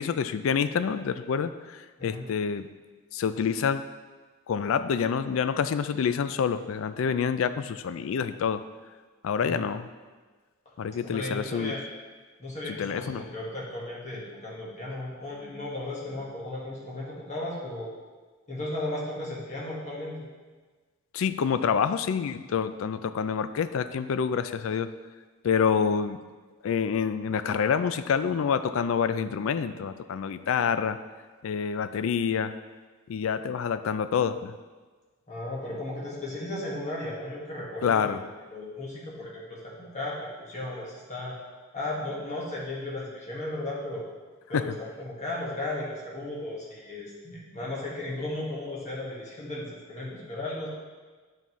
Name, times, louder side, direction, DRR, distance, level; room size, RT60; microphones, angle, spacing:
voice 1, 0.0-2.7 3.1-3.8 4.5-8.6 9.2-9.9 10.8-11.7 12.7-13.2 21.1-24.9 25.4-26.2 26.6-31.0 31.4-32.5 33.1-34.5 37.8-38.2 44.5-44.8, left 6 dB, 70° left, 12 dB, 0.3 m, -27 dB
voice 2, 11.0-11.8 12.4-17.9 18.5-20.3 35.3-38.2 38.5-41.3 41.7-44.0 44.5-50.7, left 1 dB, 35° left, -5 dB, 1.6 m, -35 dB
8.9 x 5.5 x 3.1 m, 1.4 s
head